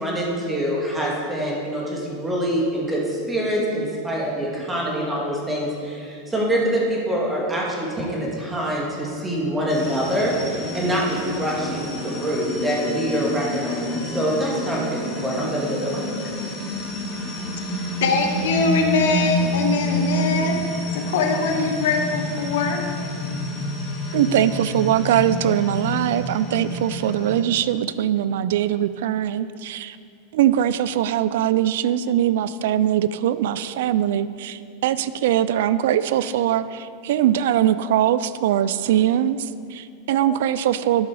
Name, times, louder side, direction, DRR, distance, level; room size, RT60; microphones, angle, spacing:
voice 1, 0.0-16.1, equal, 10° right, -4 dB, 2.4 m, -25 dB
sound 1, 9.7-27.4, left 1 dB, 25° left, 2.1 m, -28 dB
voice 2, 18.0-20.6 20.9-22.8 40.1-40.2, left 4 dB, 80° left, 4 dB, 0.9 m, -22 dB
voice 3, 24.1-30.0 30.3-41.1, right 11 dB, 75° right, 15 dB, 0.3 m, -21 dB
12.0 x 5.9 x 4.8 m, 2.4 s
hypercardioid pair, 115°, 0 cm